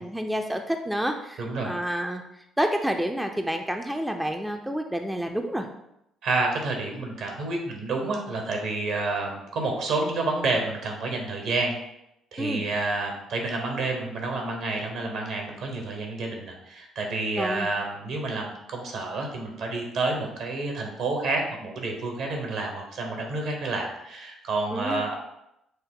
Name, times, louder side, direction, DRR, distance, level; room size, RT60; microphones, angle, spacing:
voice 1, 0.0-2.2 2.6-5.7 12.4-12.6 17.4-17.7 24.7-25.0, equal, 5° right, 4 dB, 0.4 m, -29 dB
voice 2, 1.4-1.7 6.2-11.7 12.3-25.2, right 3 dB, 65° right, 2 dB, 1.0 m, -29 dB
5.4 x 2.1 x 3.7 m, 0.83 s
hypercardioid pair, 55°, 0 cm